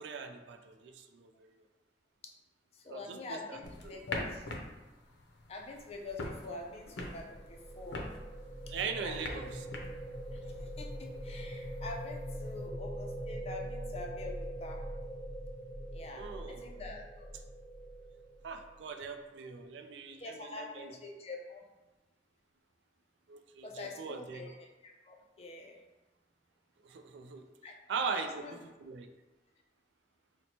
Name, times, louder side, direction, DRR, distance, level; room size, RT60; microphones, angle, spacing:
voice 1, 0.0-1.6 2.9-3.6 3.8-3.9 8.7-9.7 16.1-16.7 18.4-20.9 23.3-24.5 26.8-27.4 27.9-29.1, right 5 dB, 80° right, 7 dB, 0.3 m, -40 dB
voice 2, 2.7-4.5 5.5-8.0 9.0-9.4 10.3-14.8 15.9-17.0 20.2-21.6 23.6-25.8 27.6-27.7 28.1-28.6, left 3 dB, 35° left, 1 dB, 0.4 m, -45 dB
sound 1, 3.6-12.7, left 2 dB, 90° left, 0.5 m, -45 dB
sound 2, 6.8-18.9, right 1 dB, 5° left, 0.8 m, -43 dB
2.9 x 2.1 x 4.0 m, 1.2 s
head